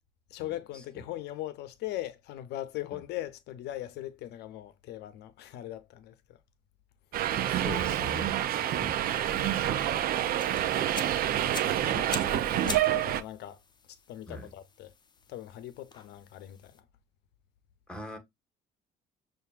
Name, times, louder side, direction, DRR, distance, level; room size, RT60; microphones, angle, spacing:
voice 1, 0.3-6.4 8.5-8.6 9.1-9.4 11.6-13.6 14.1-14.9 15.3-16.8, left 14 dB, 80° left, 0.7 m, -40 dB
Subway metro underground, 7.1-13.2, right 11 dB, 60° right, 0.5 m, -28 dB
voice 2, 7.5-9.0 14.3-14.5 17.9-18.2, left 1 dB, 5° left, 1.5 m, -41 dB
sound 1, 10.3-16.8, left 4 dB, 25° left, 0.7 m, -45 dB
6.6 x 2.6 x 2.4 m
cardioid pair, 110°, 17 cm